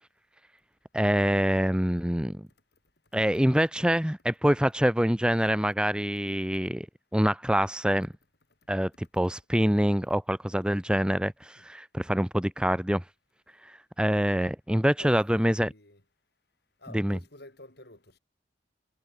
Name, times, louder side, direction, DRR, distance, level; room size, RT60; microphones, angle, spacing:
voice 1, 0.9-2.4 3.1-6.9 7.1-8.1 8.7-13.0 13.6-15.7 16.9-17.2, equal, 5° right, 1.0 m, -25 dB
voice 2, 14.9-16.0 16.8-18.2, left 2 dB, 60° left, 7.2 m, -51 dB
head